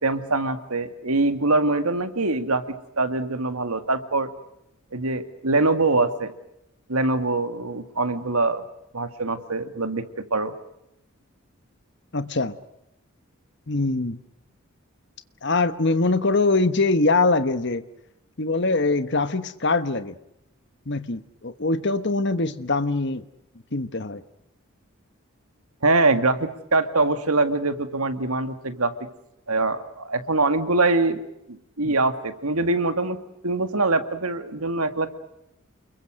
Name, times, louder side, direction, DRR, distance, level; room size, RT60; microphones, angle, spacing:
voice 1, 0.0-4.3 4.9-6.3 6.9-8.7 8.9-10.0 10.3-10.5 25.8-28.9 29.5-31.2 31.5-33.2 33.4-35.1, right 3 dB, 90° right, 9 dB, 2.1 m, -23 dB
voice 2, 12.1-12.5 13.7-14.2 15.4-17.8 18.4-20.1 20.9-23.2 23.7-24.2 31.8-31.9, left 3 dB, 55° left, 12 dB, 1.3 m, -23 dB
29.0 x 22.5 x 6.5 m, 0.83 s
head